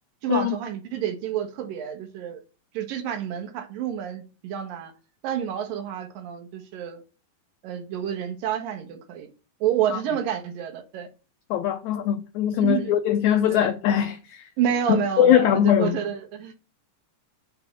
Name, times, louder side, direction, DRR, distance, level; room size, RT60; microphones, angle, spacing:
voice 1, 0.2-2.4 2.7-4.9 5.2-7.0 7.6-9.3 9.6-11.1 12.6-12.9 13.5-13.7 14.6-16.6, right 9 dB, 75° right, 3.1 m, -29 dB
voice 2, 11.5-14.5 14.9-16.0, left 10 dB, 85° left, 1.6 m, -21 dB
8.2 x 4.7 x 7.3 m
omnidirectional pair, 4.1 m